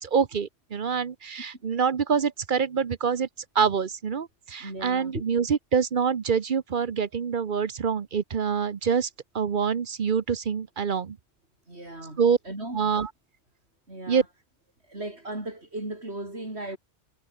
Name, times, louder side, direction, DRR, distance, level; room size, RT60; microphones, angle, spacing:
voice 1, 0.0-3.3 3.5-9.1 9.3-11.2 12.2-12.4 12.7-13.1 14.1-14.2, right 6 dB, 50° right, 1.0 m, -25 dB
voice 2, 4.6-5.2 11.7-12.8 13.9-14.3 14.8-16.8, right 1 dB, 80° right, 6.3 m, -36 dB
omnidirectional pair, 1.1 m